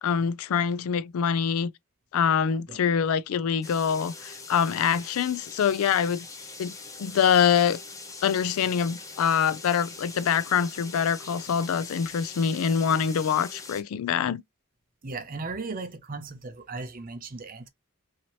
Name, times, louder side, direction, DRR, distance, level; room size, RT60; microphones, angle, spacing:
voice 1, 0.0-1.7 2.1-6.3 6.6-6.7 7.0-7.8 8.2-14.4, left 7 dB, 75° left, 0.3 m, -25 dB
sound 1, 3.6-13.8, left 3 dB, 15° left, 0.5 m, -42 dB
voice 2, 15.0-17.7, right 3 dB, 40° right, 0.6 m, -36 dB
2.8 x 2.7 x 3.0 m
head